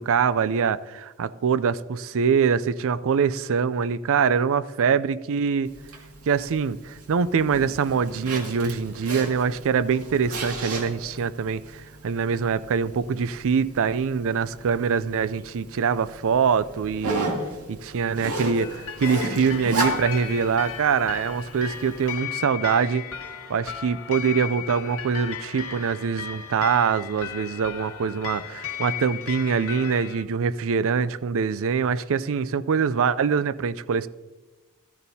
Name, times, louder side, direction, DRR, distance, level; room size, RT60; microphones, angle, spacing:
voice 1, 0.0-5.7 6.3-17.3 17.7-23.1 23.5-34.1, right 6 dB, 65° right, 0.4 m, -24 dB
Zipper (clothing), 5.7-22.1, right 2 dB, 85° right, 2.1 m, -35 dB
sound 1, 18.6-30.2, left 9 dB, 65° left, 1.4 m, -36 dB
14.0 x 14.0 x 2.8 m
head